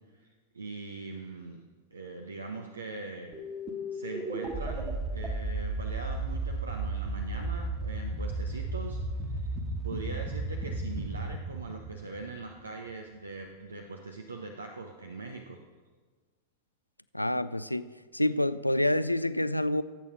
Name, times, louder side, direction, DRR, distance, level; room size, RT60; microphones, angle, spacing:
voice 1, 0.1-1.6 1.9-3.3 3.9-9.0 9.3-9.5 9.8-15.6, right 3 dB, 75° right, 1.0 m, -41 dB
sound 1, 3.3-12.7, right 2 dB, 25° right, 1.7 m, -34 dB
voice 2, 17.1-17.9 18.1-19.8, left 1 dB, 85° left, 0.4 m, -27 dB
16.0 x 8.4 x 6.1 m
figure-of-eight pair, 90°, 0 cm